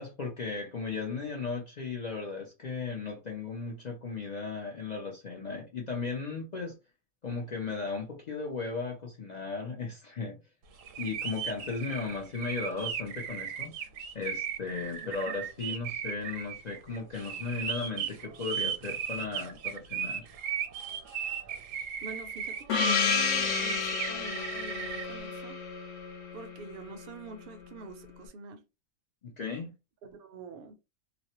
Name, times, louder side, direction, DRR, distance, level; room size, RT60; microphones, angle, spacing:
voice 1, 0.0-6.8 7.2-10.4 11.0-13.7 14.1-20.3 29.2-29.7, left 4 dB, 55° left, 0.4 m, -36 dB
sound 1, 10.8-25.1, right 8 dB, 80° right, 1.0 m, -36 dB
voice 2, 22.0-25.6 26.3-28.7 30.0-30.7, right 4 dB, 60° right, 0.6 m, -45 dB
Gong, 22.7-27.0, left 5 dB, 70° left, 0.9 m, -31 dB
2.4 x 2.0 x 2.8 m
omnidirectional pair, 1.3 m